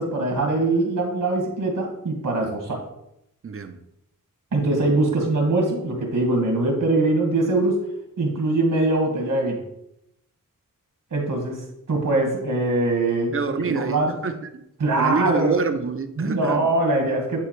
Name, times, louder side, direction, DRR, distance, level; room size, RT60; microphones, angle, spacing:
voice 1, 0.0-2.8 4.5-7.8 8.2-9.6 11.1-14.1 14.8-15.6 16.2-17.4, right 2 dB, 70° right, 1 dB, 1.9 m, -22 dB
voice 2, 3.4-3.8 13.3-14.6 15.0-16.7, right 4 dB, 40° right, 10 dB, 0.6 m, -26 dB
10.0 x 4.0 x 3.2 m, 0.81 s
wide cardioid pair, 95°, 34 cm